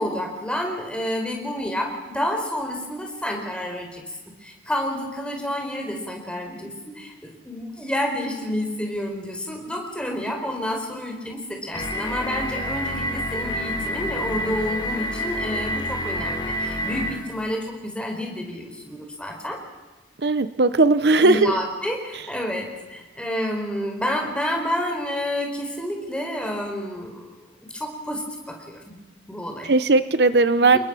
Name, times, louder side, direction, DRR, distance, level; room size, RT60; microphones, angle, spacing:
voice 1, 0.0-4.0 4.4-19.6 21.2-27.2 27.7-28.2 28.5-29.0 29.3-29.7 30.6-30.8, left 1 dB, 5° left, 2 dB, 4.4 m, -29 dB
sound 1, 11.7-17.3, equal, 25° left, 3.4 m, -28 dB
voice 2, 20.2-21.5 29.6-30.8, right 3 dB, 65° right, 13 dB, 0.8 m, -17 dB
28.5 x 21.5 x 6.2 m, 1.2 s
head